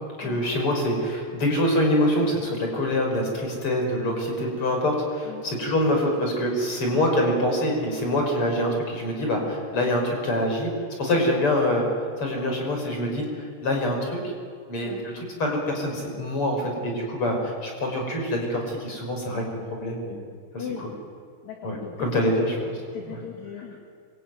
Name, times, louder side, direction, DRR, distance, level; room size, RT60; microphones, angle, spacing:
voice 1, 0.2-10.7 11.0-11.8 12.2-14.2 14.7-15.1 15.4-19.4 19.7-20.2 21.6-22.8, left 1 dB, 30° left, 2 dB, 6.3 m, -25 dB
voice 2, 20.6-20.9 21.4-22.1 22.9-23.8, left 7 dB, 50° left, 1 dB, 3.2 m, -38 dB
26.5 x 24.0 x 9.4 m, 2.1 s
omnidirectional pair, 4.8 m